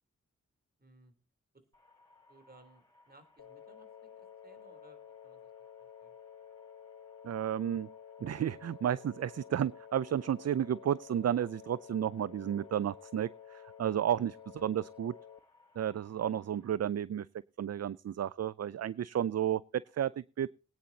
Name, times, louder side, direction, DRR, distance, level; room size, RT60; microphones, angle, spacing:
voice 1, 0.8-1.1 1.5-1.6 2.3-3.9 4.2-5.5 5.8-6.2 14.1-14.2, right 1 dB, 30° right, 8 dB, 3.4 m, -61 dB
sound 1, 1.7-16.7, left 3 dB, 10° left, 6.8 m, -65 dB
sound 2, 3.4-15.4, left 8 dB, 65° left, 1.3 m, -52 dB
voice 2, 7.2-7.9 8.2-15.1 15.8-17.3 17.6-20.5, right 10 dB, 55° right, 20 dB, 0.5 m, -32 dB
21.5 x 9.5 x 2.8 m, 0.35 s
cardioid pair, 50°, 30 cm